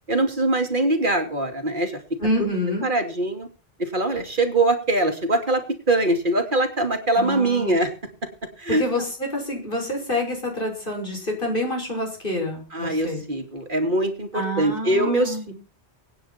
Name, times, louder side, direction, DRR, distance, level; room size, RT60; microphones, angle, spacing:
voice 1, 0.1-2.0 2.8-3.5 3.8-7.9 8.6-8.8 12.7-15.5, right 2 dB, 45° right, 6 dB, 2.8 m, -22 dB
voice 2, 2.2-2.9 7.1-7.8 8.8-13.3 14.3-15.5, left 1 dB, 50° left, 2 dB, 6.2 m, -27 dB
24.0 x 9.7 x 4.3 m, 0.35 s
omnidirectional pair, 1.2 m